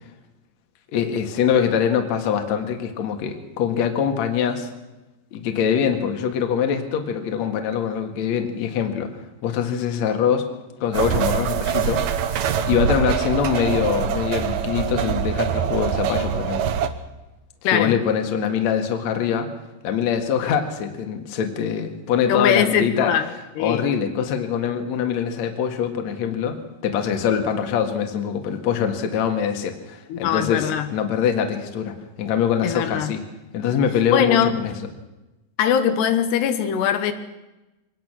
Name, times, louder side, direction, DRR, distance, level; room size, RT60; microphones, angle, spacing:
voice 1, 0.9-4.7 5.3-9.1 9.4-10.5 10.8-12.0 12.7-16.7 17.7-19.5 19.8-23.1 23.6-33.2 33.5-34.7, left 8 dB, 50° left, 5 dB, 2.5 m, -23 dB
sound 1, 10.9-16.9, right 8 dB, 75° right, 1.7 m, -24 dB
voice 2, 22.3-23.3 23.6-23.8 30.1-30.9 32.6-33.1 34.1-34.5 35.6-37.1, left 9 dB, 80° left, 8 dB, 3.2 m, -21 dB
23.5 x 19.0 x 6.2 m, 1.0 s
omnidirectional pair, 4.8 m